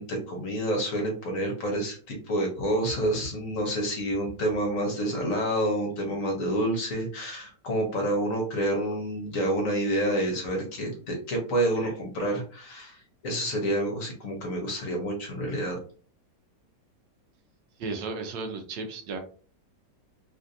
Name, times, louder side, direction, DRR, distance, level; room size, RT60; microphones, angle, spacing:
voice 1, 0.0-15.8, right 1 dB, 55° left, 1 dB, 1.1 m, -28 dB
voice 2, 17.8-19.2, right 3 dB, 85° right, 6 dB, 1.3 m, -34 dB
3.3 x 2.6 x 2.5 m, 0.41 s
omnidirectional pair, 1.9 m